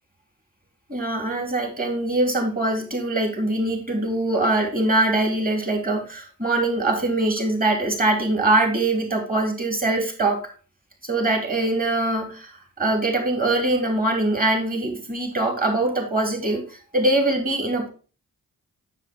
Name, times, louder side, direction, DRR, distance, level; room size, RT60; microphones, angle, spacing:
voice 1, 0.9-10.5 11.0-17.9, right 2 dB, 25° right, 2 dB, 2.9 m, -23 dB
7.3 x 6.9 x 3.6 m, 0.36 s
cardioid pair, 55°, 36 cm